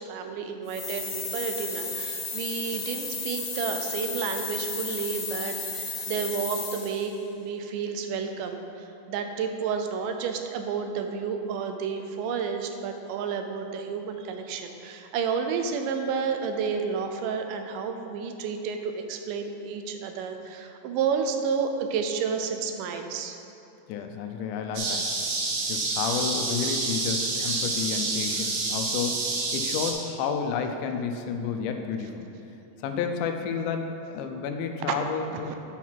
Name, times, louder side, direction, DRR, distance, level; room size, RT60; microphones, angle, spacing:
voice 1, 0.0-7.1 7.4-23.4 35.3-35.5, right 6 dB, 90° right, 6 dB, 2.2 m, -31 dB
sound 1, 0.7-7.1, left 4 dB, 55° left, 2.1 m, -34 dB
voice 2, 23.9-25.1 25.7-32.3 32.8-35.5, left 6 dB, 85° left, 5 dB, 2.1 m, -31 dB
sound 2, 24.8-29.9, right 3 dB, 70° right, 2.3 m, -28 dB
8.1 x 5.8 x 4.5 m, 2.9 s
omnidirectional pair, 3.7 m